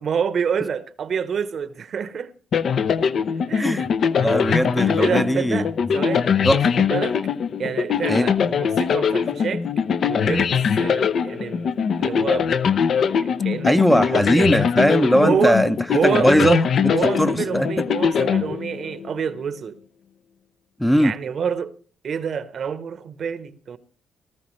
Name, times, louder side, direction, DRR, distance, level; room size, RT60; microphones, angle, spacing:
voice 1, 0.0-2.3 3.5-3.7 4.2-4.3 5.0-6.4 6.7-7.2 7.6-9.6 10.0-10.5 10.8-12.7 13.1-14.7 15.2-15.6 15.9-16.6 16.9-19.8 21.0-21.7 22.0-23.8, right 7 dB, 55° right, 0.9 m, -27 dB
sound 1, 2.5-19.1, left 7 dB, 60° left, 0.6 m, -22 dB
voice 2, 3.6-3.9 4.2-5.6 6.4-6.7 8.1-8.3 13.6-15.8 16.0-16.9 17.2-17.9 20.8-21.1, equal, 5° left, 0.6 m, -19 dB
18.5 x 13.0 x 3.1 m
cardioid pair, 90°, 0 cm